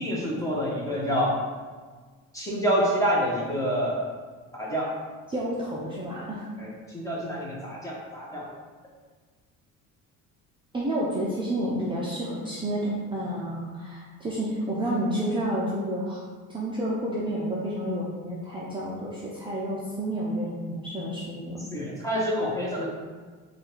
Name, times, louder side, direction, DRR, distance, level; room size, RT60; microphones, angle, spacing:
voice 1, 0.0-1.4 2.3-4.1 4.5-4.9 6.6-8.5 21.7-22.9, equal, 10° left, -5 dB, 1.2 m, -27 dB
voice 2, 5.3-6.4 10.7-16.2 16.5-21.6, right 1 dB, 15° right, -6 dB, 0.7 m, -30 dB
4.4 x 2.5 x 4.6 m, 1.5 s
cardioid pair, 110°, 34 cm